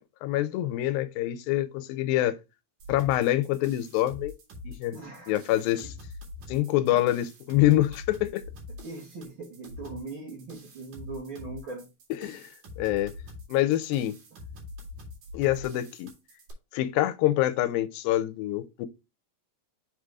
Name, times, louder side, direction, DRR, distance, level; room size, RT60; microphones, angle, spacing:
voice 1, 0.2-2.4 2.9-4.3 4.6-5.0 5.3-5.9 6.5-8.4 12.2-12.5 12.8-13.1 13.5-14.2 15.3-16.1 16.7-18.9, left 14 dB, 85° left, 2.4 m, -26 dB
sound 1, 2.8-16.5, left 2 dB, 65° right, 3.9 m, -45 dB
voice 2, 4.9-5.3 6.9-7.0 8.8-11.9 14.3-14.4, right 3 dB, 45° right, 1.8 m, -40 dB
6.9 x 3.7 x 4.7 m
omnidirectional pair, 4.1 m